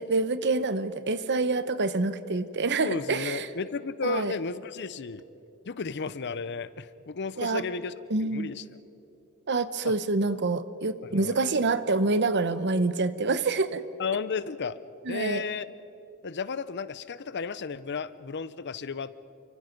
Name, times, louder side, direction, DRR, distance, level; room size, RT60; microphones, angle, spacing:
voice 1, 0.0-3.5 4.0-4.3 7.4-7.6 8.1-8.5 9.5-13.8 15.0-15.4, right 3 dB, 50° right, 13 dB, 0.9 m, -27 dB
voice 2, 2.8-5.2 5.7-7.9 8.2-8.6 9.8-9.9 11.1-11.4 14.0-14.8 15.1-15.7 16.2-19.1, left 5 dB, 50° left, 16 dB, 0.6 m, -33 dB
29.5 x 24.5 x 5.3 m, 2.9 s
head